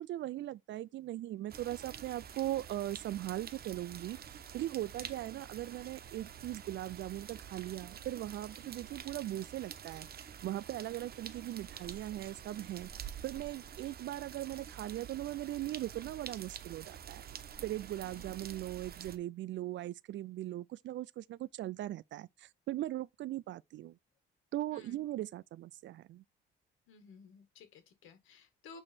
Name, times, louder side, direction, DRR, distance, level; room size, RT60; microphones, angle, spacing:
voice 1, 0.0-4.2 4.5-12.9 13.2-17.2 17.6-24.0 24.5-26.2, right 14 dB, 70° right, 0.5 m, -39 dB
sound 1, 1.5-19.2, right 8 dB, 50° right, 0.9 m, -48 dB
voice 2, 26.9-28.8, left 5 dB, 85° left, 1.8 m, -55 dB
8.8 x 3.1 x 4.4 m
cardioid pair, 90°, 20 cm